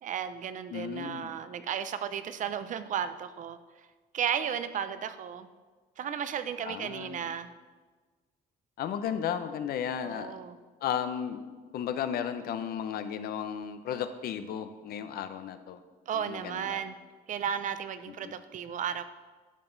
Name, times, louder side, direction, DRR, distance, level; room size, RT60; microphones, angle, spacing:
voice 1, 0.0-3.6 4.1-5.5 6.0-7.5 10.0-10.6 16.1-16.9 17.3-19.0, right 8 dB, 50° right, 12 dB, 0.6 m, -34 dB
voice 2, 0.7-1.3 6.6-7.3 8.8-10.4 10.8-11.4 11.7-15.8 16.1-16.8 18.2-18.3, left 8 dB, 65° left, 10 dB, 0.7 m, -34 dB
11.0 x 6.0 x 3.9 m, 1.3 s
cardioid pair, 110°, 17 cm